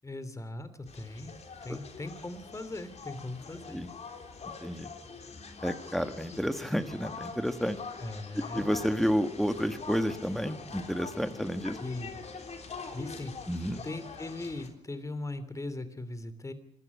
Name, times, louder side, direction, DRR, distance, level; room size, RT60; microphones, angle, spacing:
voice 1, 0.0-1.3 1.6-3.8 8.0-8.7 11.8-12.1 12.9-13.3 13.8-16.5, left 2 dB, 25° left, 11 dB, 3.0 m, -39 dB
sound 1, 0.9-14.7, left 4 dB, 55° left, 3.6 m, -44 dB
voice 2, 5.6-7.8 8.5-11.8 13.5-13.8, equal, ahead, 9 dB, 1.8 m, -30 dB
26.0 x 12.5 x 8.4 m, 0.72 s
cardioid pair, 65°, 13 cm